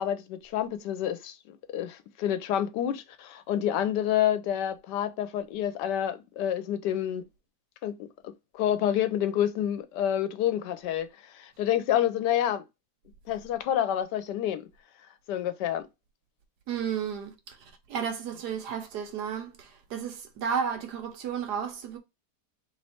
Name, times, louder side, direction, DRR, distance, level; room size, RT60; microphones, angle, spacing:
voice 1, 0.0-7.2 7.8-7.9 8.2-12.6 13.3-14.6 15.3-15.8, left 10 dB, 90° left, 1.2 m, -28 dB
voice 2, 16.7-17.6 17.9-22.0, right 7 dB, 75° right, 1.3 m, -33 dB
3.3 x 3.1 x 4.2 m
omnidirectional pair, 1.8 m